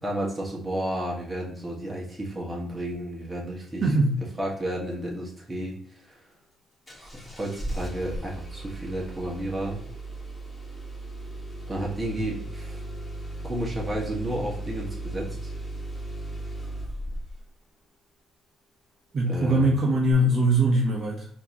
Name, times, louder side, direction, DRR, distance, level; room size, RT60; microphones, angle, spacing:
voice 1, 0.0-3.9 4.4-6.2 7.0-9.8 11.7-12.8 13.4-15.5 19.3-19.8, right 1 dB, 15° right, -3 dB, 1.6 m, -32 dB
voice 2, 3.8-4.2 19.1-21.3, right 1 dB, 50° right, -2 dB, 0.9 m, -22 dB
Engine starting, 6.9-17.5 20.1-20.2, right 1 dB, 15° left, 1.6 m, -36 dB
4.5 x 3.0 x 2.9 m, 0.64 s
cardioid pair, 90°, 0 cm